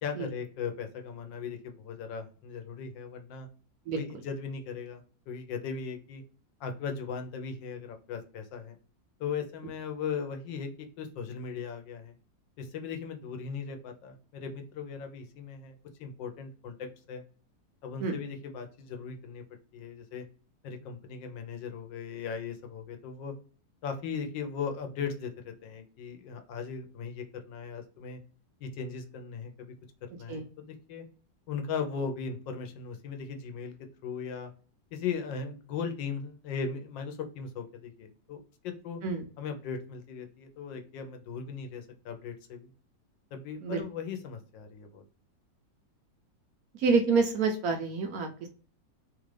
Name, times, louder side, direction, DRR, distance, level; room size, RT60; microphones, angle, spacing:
voice 1, 0.0-3.5 3.9-6.2 6.6-8.8 9.2-12.1 12.6-17.2 17.8-19.4 19.7-20.2 20.6-23.3 23.8-28.2 28.6-29.7 30.2-31.0 31.5-34.5 34.9-39.0 39.4-42.7 43.3-45.0, left 6 dB, 90° left, 5 dB, 1.4 m, -38 dB
voice 2, 46.8-48.5, right 4 dB, 70° right, 4 dB, 0.9 m, -27 dB
3.3 x 2.4 x 3.2 m, 0.40 s
omnidirectional pair, 2.0 m